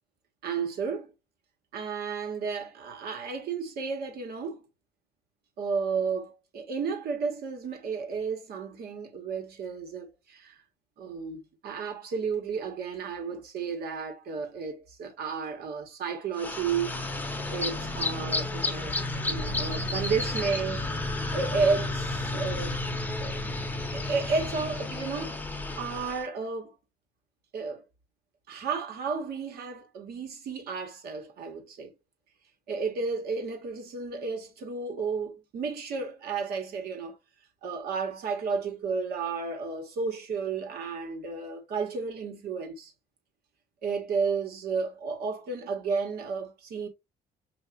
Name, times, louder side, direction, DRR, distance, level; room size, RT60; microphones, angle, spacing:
voice 1, 0.4-1.1 1.7-4.6 5.6-10.6 11.0-18.9 19.3-20.9 21.3-22.8 23.2-23.4 23.7-25.4 25.8-26.7 27.5-27.8 28.5-31.9 32.7-37.2 37.6-42.9 43.8-46.9, right 5 dB, 65° right, 1.5 m, -32 dB
sound 1, 16.4-26.2, left 2 dB, 10° left, 0.8 m, -32 dB
5.7 x 2.7 x 2.5 m
cardioid pair, 110°, 17 cm